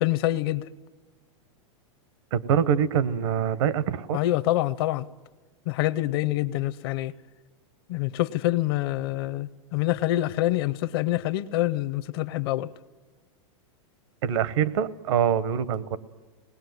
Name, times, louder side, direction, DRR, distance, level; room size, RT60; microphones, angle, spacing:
voice 1, 0.0-0.6 4.1-5.1 5.7-7.1 7.9-12.7, left 15 dB, 50° left, 0.7 m, -26 dB
voice 2, 2.3-4.2 14.2-16.0, right 8 dB, 65° right, 1.0 m, -24 dB
25.5 x 20.0 x 9.4 m
supercardioid pair, 160°, 16 cm